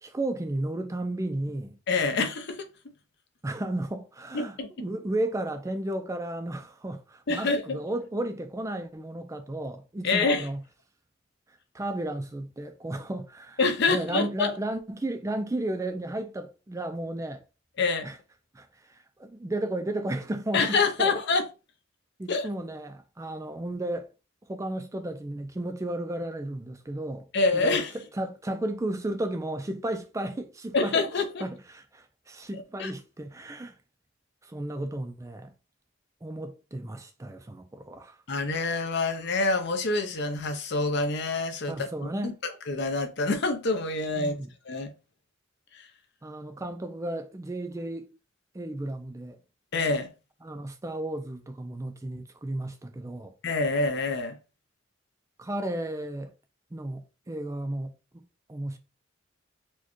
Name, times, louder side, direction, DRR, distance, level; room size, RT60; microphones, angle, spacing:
voice 1, 0.0-1.8 3.4-10.6 11.7-13.6 13.9-17.4 18.0-18.2 18.5-21.2 22.2-24.1 24.5-27.3 27.5-27.8 28.1-31.1 31.4-33.8 34.4-35.5 36.2-38.2 41.7-42.4 44.2-44.5 46.2-48.1 48.5-49.4 50.4-53.3 55.4-56.3 56.7-58.2 58.5-58.8, right 1 dB, 15° right, 0.4 m, -33 dB
voice 2, 1.9-2.7 4.3-4.7 7.3-7.8 10.0-10.5 13.6-14.5 17.8-18.1 20.5-21.4 22.3-22.5 27.3-27.9 30.7-31.4 32.5-32.9 38.3-41.9 42.2-44.3 44.7-44.9 45.7-45.9 49.7-50.1 53.4-54.4, left 3 dB, 60° left, 0.6 m, -26 dB
4.4 x 2.2 x 3.0 m
head